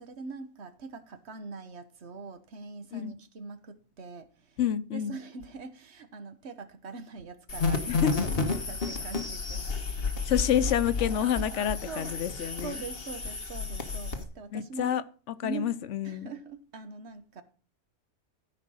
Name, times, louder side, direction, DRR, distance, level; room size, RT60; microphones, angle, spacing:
voice 1, 0.0-4.3 4.9-9.7 11.9-12.1 12.6-15.0 15.4-15.7 16.0-17.4, right 4 dB, 65° right, 1.4 m, -42 dB
voice 2, 4.6-5.2 7.9-8.1 10.2-12.8 14.5-16.3, left 10 dB, 90° left, 1.1 m, -29 dB
sound 1, 7.5-14.2, left 4 dB, 55° left, 1.6 m, -31 dB
14.0 x 5.1 x 6.2 m
omnidirectional pair, 1.2 m